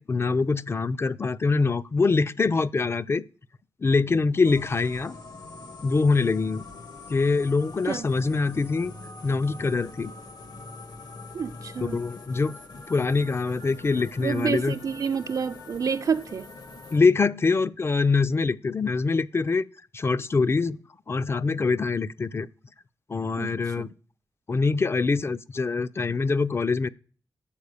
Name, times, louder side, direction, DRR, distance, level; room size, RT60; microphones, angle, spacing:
voice 1, 0.0-3.2 3.8-5.2 5.8-6.6 7.1-8.9 9.2-10.1 11.8-12.6 12.9-14.7 16.9-19.6 19.9-20.8 21.1-22.5 23.1-23.9 24.5-26.9, left 4 dB, 35° left, 0.4 m, -24 dB
sound 1, 4.4-17.0, left 2 dB, 70° left, 1.4 m, -43 dB
voice 2, 11.3-12.0 14.2-16.5 23.4-23.9, right 6 dB, 55° right, 0.3 m, -29 dB
7.1 x 4.7 x 6.5 m
wide cardioid pair, 95°, 7 cm